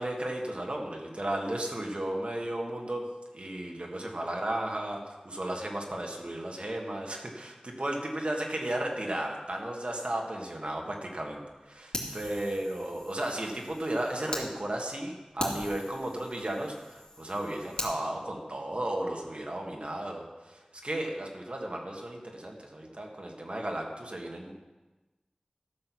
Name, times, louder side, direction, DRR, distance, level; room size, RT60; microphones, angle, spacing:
voice 1, 0.0-3.1 3.3-11.4 11.7-24.5, right 1 dB, 55° right, 1 dB, 1.7 m, -34 dB
Fire, 11.9-14.5 14.9-15.0 15.4-17.9, left 1 dB, 40° left, 2.4 m, -40 dB
13.5 x 6.5 x 6.2 m, 1.2 s
wide cardioid pair, 50°, 2 cm